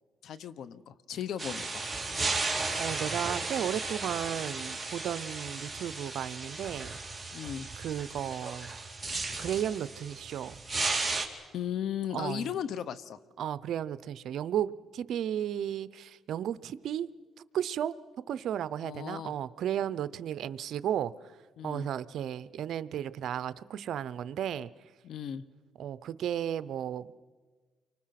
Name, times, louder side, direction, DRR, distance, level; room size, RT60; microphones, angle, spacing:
voice 1, 0.2-1.8 7.3-7.7 11.5-13.2 18.8-19.3 21.6-21.9 25.0-25.4, left 9 dB, 70° left, 15 dB, 1.0 m, -36 dB
sound 1, 1.4-11.3, right 3 dB, 10° right, 3.4 m, -35 dB
voice 2, 2.8-7.0 7.8-8.7 9.4-10.5 12.1-12.5 13.4-17.1 17.5-17.9 18.3-21.1 21.6-24.7 25.8-27.1, right 10 dB, 70° right, 16 dB, 0.7 m, -34 dB
29.5 x 24.5 x 5.9 m, 1.5 s
cardioid pair, 90°, 0 cm